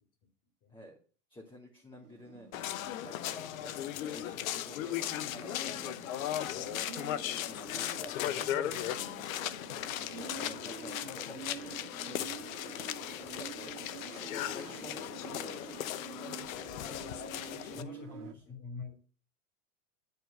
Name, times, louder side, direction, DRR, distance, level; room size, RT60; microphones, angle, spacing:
voice 1, 1.3-2.5 3.0-6.4 7.2-8.7 9.8-11.8 13.2-13.8 14.1-15.9 17.3-18.4, equal, 10° left, 2.4 m, -51 dB
sound 1, 2.0-18.3, right 7 dB, 70° right, 1.7 m, -49 dB
sound 2, 2.5-17.8, left 12 dB, 60° left, 0.9 m, -37 dB
voice 2, 17.7-19.0, left 5 dB, 40° left, 2.9 m, -47 dB
11.0 x 4.6 x 7.8 m
hypercardioid pair, 105°, 46 cm